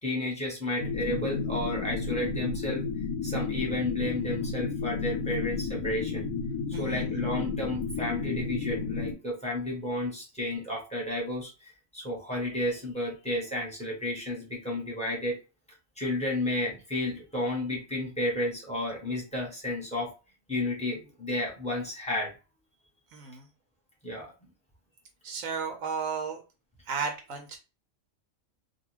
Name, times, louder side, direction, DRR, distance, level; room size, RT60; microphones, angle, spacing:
voice 1, 0.0-2.8 3.2-6.2 6.8-15.4 16.0-20.1 20.5-22.3 24.0-24.3, left 1 dB, 5° left, -2 dB, 0.9 m, -32 dB
sound 1, 0.8-9.1, left 5 dB, 90° left, 1.1 m, -32 dB
voice 2, 6.7-7.1 23.1-23.5 25.2-26.4 26.9-27.6, right 5 dB, 80° right, 4 dB, 1.0 m, -34 dB
2.5 x 2.3 x 3.1 m, 0.31 s
omnidirectional pair, 1.4 m